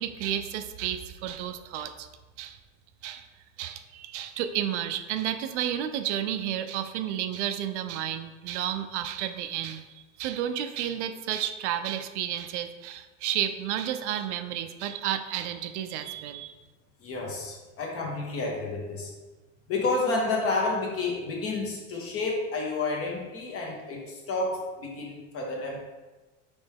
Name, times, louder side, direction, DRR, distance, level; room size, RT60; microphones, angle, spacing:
voice 1, 0.0-2.1 2.4-2.6 3.0-3.3 3.6-16.5, right 10 dB, 80° right, 9 dB, 0.5 m, -32 dB
voice 2, 17.0-19.1 19.7-25.8, left 3 dB, 40° left, -1 dB, 1.3 m, -30 dB
4.2 x 3.3 x 3.4 m, 1.2 s
supercardioid pair, 105°, 35 cm